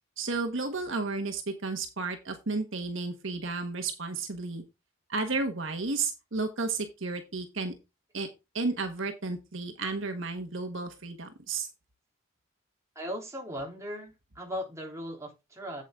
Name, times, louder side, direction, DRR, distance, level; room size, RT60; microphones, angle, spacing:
voice 1, 0.2-4.6 5.1-7.7 8.1-8.3 8.5-11.7, right 3 dB, 65° right, 5 dB, 1.5 m, -32 dB
voice 2, 12.9-15.8, equal, 15° right, 0 dB, 3.2 m, -38 dB
8.3 x 8.1 x 3.7 m, 0.25 s
head